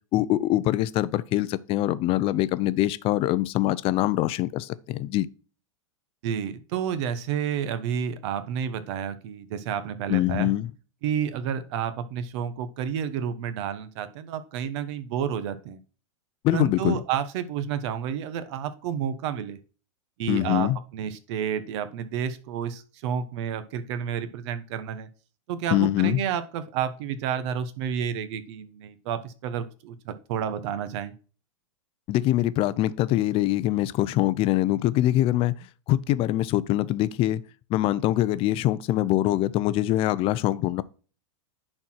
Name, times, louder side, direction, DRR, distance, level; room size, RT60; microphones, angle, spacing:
voice 1, 0.1-5.3 10.1-10.7 16.4-17.0 20.3-20.8 25.7-26.2 32.1-35.6 35.9-37.4 37.7-40.8, left 14 dB, 35° left, 0.6 m, -24 dB
voice 2, 6.2-10.5 11.0-15.8 16.5-19.6 20.2-25.1 25.5-31.1, right 8 dB, 55° right, 1.2 m, -30 dB
10.0 x 4.5 x 4.5 m
hypercardioid pair, 130°, 17 cm